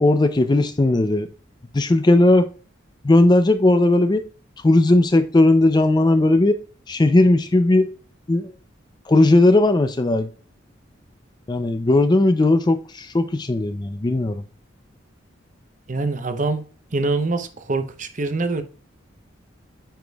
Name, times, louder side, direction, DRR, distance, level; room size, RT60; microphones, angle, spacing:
voice 1, 0.0-1.3 1.7-2.5 3.0-4.2 4.6-6.6 6.9-7.9 8.3-8.5 9.1-10.3 11.5-14.4, left 2 dB, 20° left, 0.4 m, -17 dB
voice 2, 15.9-16.6 16.9-18.6, right 3 dB, 40° right, 0.7 m, -24 dB
9.0 x 5.0 x 2.3 m
head